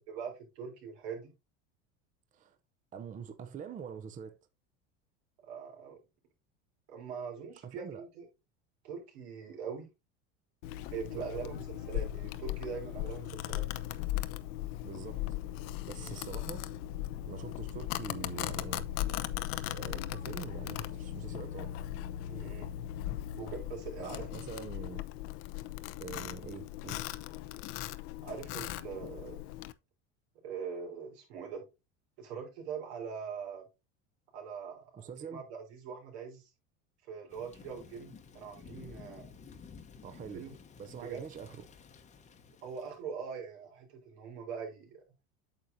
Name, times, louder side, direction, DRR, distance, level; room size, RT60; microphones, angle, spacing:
voice 1, 0.1-1.3 5.4-6.0 6.9-8.3 8.8-9.9 10.9-13.7 16.0-16.2 22.2-22.7 23.4-24.4 28.2-29.4 30.4-31.6 32.2-33.7 34.3-36.5 37.1-39.3 40.3-40.6 41.0-41.2 42.6-45.0, right 6 dB, 80° right, 3.6 m, -42 dB
voice 2, 2.9-4.4 7.6-8.0 11.1-11.3 14.8-15.4 15.9-16.7 17.2-18.9 19.7-21.7 24.0-25.0 26.0-27.0 35.0-35.4 40.0-40.5 40.8-41.6, right 7 dB, 25° right, 0.6 m, -44 dB
Domestic sounds home sounds, 10.6-29.7, left 14 dB, 65° left, 0.7 m, -38 dB
Thunder / Rain, 37.3-43.0, left 5 dB, 20° left, 0.9 m, -53 dB
8.8 x 6.3 x 2.7 m
supercardioid pair, 130°, 32 cm